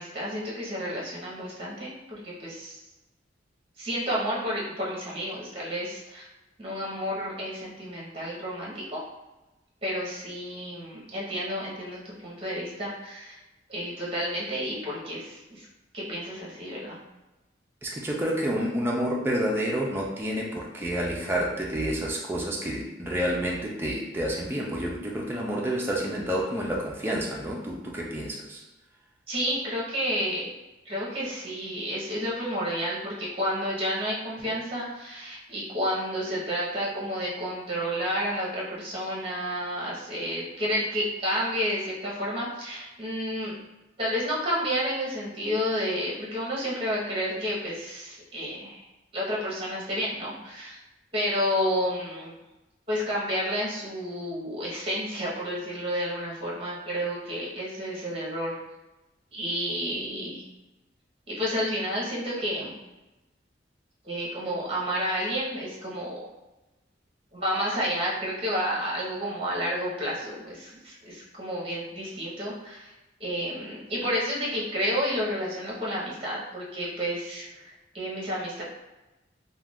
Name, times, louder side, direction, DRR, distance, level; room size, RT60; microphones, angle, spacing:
voice 1, 0.0-2.8 3.8-6.3 6.6-9.0 9.8-13.4 13.7-15.7 15.9-17.0 29.3-30.5 30.8-43.5 44.0-48.8 49.1-50.8 51.1-52.3 52.9-58.6 59.3-60.4 61.3-62.7 64.0-66.2 67.3-72.9 73.2-78.6, equal, 30° right, -5 dB, 0.8 m, -30 dB
voice 2, 17.8-28.6, equal, 10° right, -3 dB, 0.3 m, -29 dB
2.4 x 2.2 x 3.4 m, 1.0 s
head